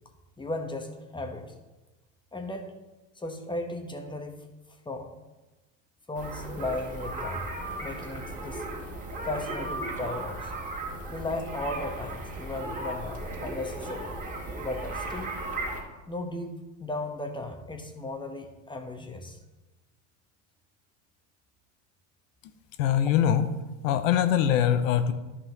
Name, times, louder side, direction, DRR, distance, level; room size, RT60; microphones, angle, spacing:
voice 1, 0.4-1.5 2.3-2.7 3.1-5.1 6.1-7.5 7.8-8.6 9.2-10.5 11.1-14.3 14.6-15.4 16.1-19.4, left 2 dB, 10° left, 5 dB, 1.0 m, -36 dB
sound 1, 6.1-15.8, right 2 dB, 20° right, 2.2 m, -36 dB
voice 2, 22.8-23.5 23.8-25.1, left 9 dB, 70° left, 10 dB, 0.8 m, -23 dB
11.5 x 5.6 x 4.0 m, 1.1 s
hypercardioid pair, 95°, 40 cm